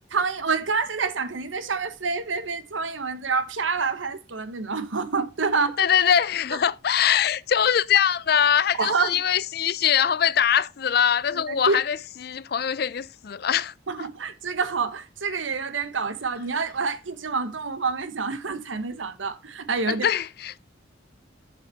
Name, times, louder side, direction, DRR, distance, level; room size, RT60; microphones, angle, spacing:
voice 1, 0.1-5.8 8.8-9.2 11.3-11.8 13.9-20.1, right 4 dB, 85° right, 1.1 m, -27 dB
voice 2, 5.8-14.1 19.9-20.6, left 8 dB, 55° left, 0.4 m, -23 dB
7.2 x 7.2 x 5.7 m
head